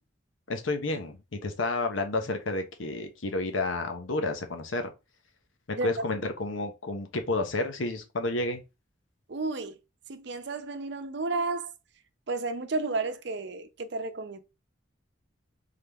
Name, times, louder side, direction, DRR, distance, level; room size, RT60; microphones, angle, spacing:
voice 1, 0.5-4.9 5.8-8.6, left 2 dB, 85° left, 0.9 m, -30 dB
voice 2, 9.3-9.8 10.1-11.7 12.3-14.4, right 3 dB, 60° right, 0.6 m, -32 dB
3.8 x 3.4 x 3.4 m
head